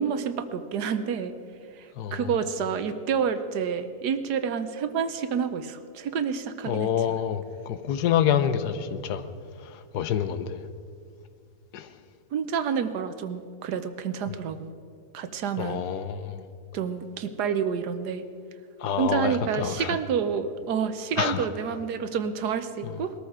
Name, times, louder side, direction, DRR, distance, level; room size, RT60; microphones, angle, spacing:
voice 1, 0.0-1.3 2.1-6.9 12.3-14.7 15.1-15.8 16.7-18.2 19.0-23.1, right 7 dB, 80° right, 10 dB, 1.4 m, -28 dB
voice 2, 2.0-2.3 6.7-9.3 9.9-10.6 11.7-11.9 14.3-14.4 15.6-16.4 18.8-20.0 21.2-21.5, left 8 dB, 85° left, 11 dB, 1.4 m, -27 dB
21.0 x 13.5 x 4.9 m, 2.3 s
omnidirectional pair, 1.7 m